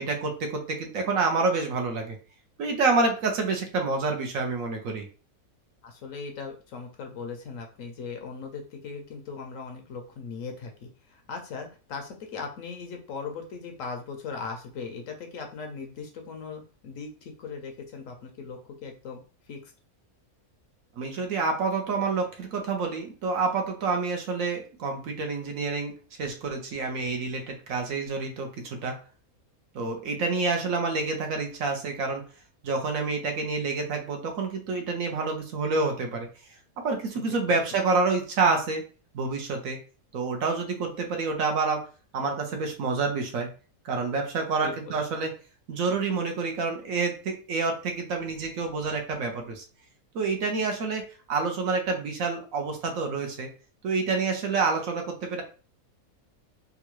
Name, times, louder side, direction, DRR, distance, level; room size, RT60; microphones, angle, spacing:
voice 1, 0.0-2.2 2.6-5.0 21.0-29.0 29.7-32.2 32.6-36.3 36.8-38.8 39.1-39.8 40.1-41.8 42.1-43.5 43.8-45.3 45.7-49.6 50.1-53.5 53.8-55.4, right 4 dB, 65° right, 3 dB, 1.1 m, -28 dB
voice 2, 5.8-19.2 19.5-19.7 37.1-37.6 44.6-45.0, left 5 dB, 70° left, 3 dB, 0.9 m, -39 dB
3.7 x 2.2 x 3.0 m, 0.36 s
omnidirectional pair, 1.6 m